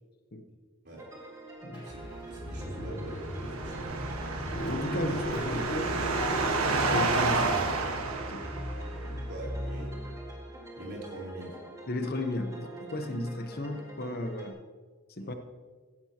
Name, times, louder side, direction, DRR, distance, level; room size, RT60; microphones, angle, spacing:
sound 1, 1.0-14.5, right 2 dB, 15° right, 1.8 m, -46 dB
Car / Engine starting, 1.7-10.5, equal, 25° left, 3.3 m, -37 dB
voice 1, 1.8-3.9 9.3-9.9 10.8-11.5 15.2-15.4, right 1 dB, 50° right, -3 dB, 3.6 m, -43 dB
sound 2, 2.7-9.1, right 3 dB, 85° right, 1.4 m, -30 dB
voice 2, 4.6-5.9 6.9-7.7 8.3-8.4 9.0-9.3 11.9-14.5 15.2-15.3, left 1 dB, 45° left, 7 dB, 0.9 m, -34 dB
15.0 x 10.5 x 2.9 m, 1.5 s
head